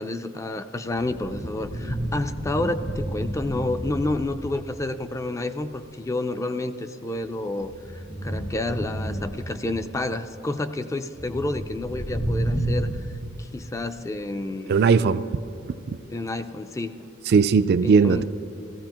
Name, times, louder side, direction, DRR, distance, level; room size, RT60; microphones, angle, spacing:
voice 1, 0.0-12.9 13.4-14.7 16.1-16.9 17.8-18.2, left 2 dB, 15° left, 9 dB, 0.4 m, -29 dB
sound 1, 0.9-4.6 5.6-5.9 7.2-9.8 11.1-13.0, right 1 dB, 75° left, 2.2 m, -30 dB
voice 2, 14.7-15.2 15.9-16.0 17.3-18.2, right 5 dB, 55° right, 12 dB, 0.3 m, -18 dB
16.0 x 15.0 x 2.9 m, 2.9 s
head